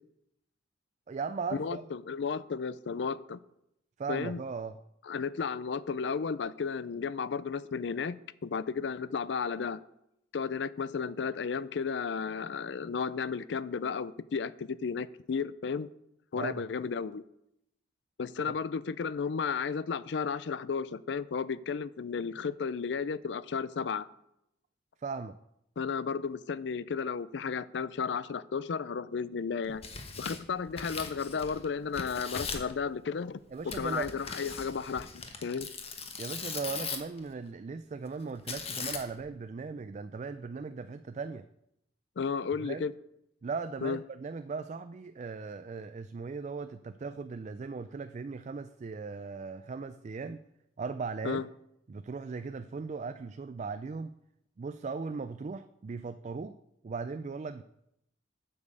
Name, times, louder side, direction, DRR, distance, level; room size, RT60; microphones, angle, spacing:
voice 1, 1.1-1.8 4.0-4.8 16.4-16.6 25.0-25.4 33.5-34.1 36.2-41.5 42.6-42.9 43.4-50.4 50.8-51.4 51.9-54.2 54.6-56.6 56.8-57.6, right 4 dB, 40° right, 11 dB, 0.3 m, -38 dB
voice 2, 1.6-3.4 4.1-4.4 5.1-8.2 8.4-9.8 10.3-15.9 16.3-17.2 18.2-24.0 25.8-29.8 30.2-33.4 33.6-35.7 42.2-42.9 43.8-44.0 51.2-51.5, left 5 dB, 70° left, 18 dB, 0.4 m, -33 dB
Tearing, 29.6-31.7 31.9-32.7 33.7-37.2 38.5-39.3, left 5 dB, 35° left, 1.2 m, -39 dB
8.3 x 7.2 x 6.6 m, 0.81 s
head